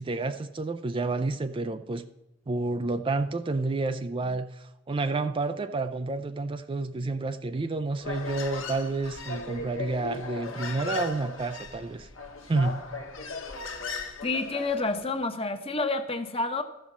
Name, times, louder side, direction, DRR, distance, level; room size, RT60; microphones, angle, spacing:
voice 1, 0.0-2.1 2.5-12.1 12.5-12.8, right 3 dB, 25° right, 9 dB, 0.4 m, -30 dB
Human voice, 8.0-15.1, left 3 dB, 70° left, 1.2 m, -37 dB
voice 2, 14.2-16.6, left 3 dB, 30° left, 8 dB, 0.9 m, -29 dB
13.5 x 5.4 x 7.3 m, 0.93 s
head